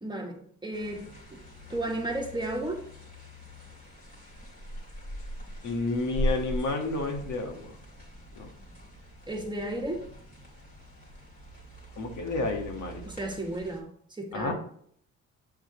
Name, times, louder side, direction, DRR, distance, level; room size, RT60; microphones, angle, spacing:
voice 1, 0.0-1.4 1.7-2.8 9.3-10.0 13.0-14.5, right 1 dB, 15° right, 2 dB, 1.6 m, -34 dB
sound 1, 0.7-13.8, right 1 dB, 30° left, 3.0 m, -40 dB
voice 2, 5.6-7.8 8.3-8.5 12.0-13.1 14.3-14.5, left 3 dB, 75° left, 3 dB, 1.6 m, -30 dB
7.7 x 6.2 x 3.0 m, 0.62 s
cardioid pair, 90°, 30 cm